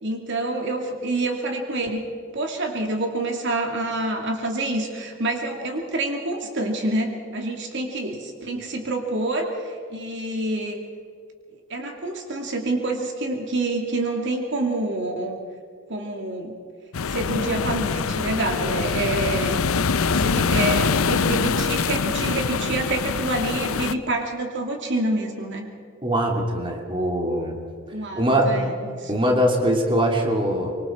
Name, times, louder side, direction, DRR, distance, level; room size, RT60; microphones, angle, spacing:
voice 1, 0.0-2.0 2.3-10.8 11.7-15.4 15.9-16.6 17.1-19.6 20.1-25.7 27.9-29.2, right 2 dB, 60° right, 2 dB, 2.7 m, -27 dB
sound 1, 16.9-23.9, left 5 dB, 80° left, 0.7 m, -24 dB
voice 2, 26.0-27.6 28.1-28.5 29.1-30.7, equal, 25° right, 1 dB, 3.0 m, -22 dB
25.5 x 24.0 x 4.6 m, 2.2 s
head